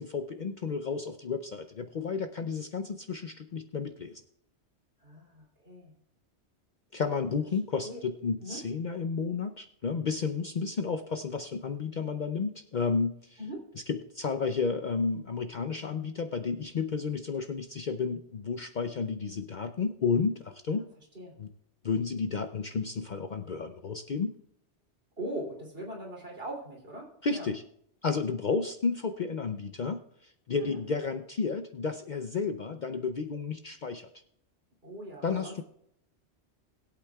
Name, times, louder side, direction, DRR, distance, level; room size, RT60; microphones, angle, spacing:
voice 1, 0.0-4.2 6.9-13.4 13.9-20.9 21.4-21.5 21.8-24.3 27.2-27.6 28.0-34.1 35.2-35.6, left 5 dB, 50° left, 7 dB, 0.6 m, -32 dB
voice 2, 5.0-5.9 7.8-8.0 8.4-8.6 13.4-13.6 20.8-20.9 21.1-21.3 25.2-27.5 30.5-30.8 34.8-35.6, right 1 dB, 55° right, -2 dB, 3.2 m, -40 dB
20.5 x 8.3 x 2.3 m, 0.72 s
omnidirectional pair, 1.2 m